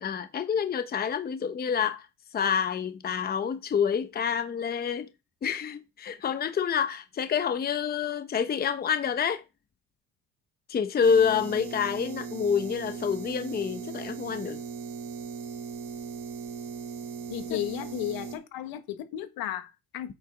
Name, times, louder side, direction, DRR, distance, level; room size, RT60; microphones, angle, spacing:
voice 1, 0.0-2.1 2.3-5.1 5.4-9.4 10.7-14.6 17.5-17.6, left 7 dB, 25° left, 0.8 m, -27 dB
sound 1, 11.0-18.4, right 6 dB, 85° right, 2.9 m, -38 dB
voice 2, 17.3-20.1, left 13 dB, 75° left, 1.5 m, -34 dB
8.7 x 5.5 x 4.9 m
cardioid pair, 130°, 36 cm